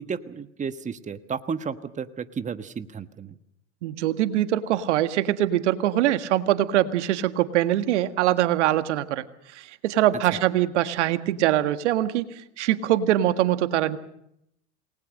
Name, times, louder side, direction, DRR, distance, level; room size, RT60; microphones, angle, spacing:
voice 1, 0.0-3.3 10.3-10.4, right 6 dB, 20° right, 11 dB, 1.4 m, -33 dB
voice 2, 3.8-9.2 9.5-12.3 12.6-14.0, right 13 dB, 75° right, 10 dB, 1.8 m, -23 dB
28.0 x 20.5 x 6.5 m, 0.76 s
hypercardioid pair, 100°, 35 cm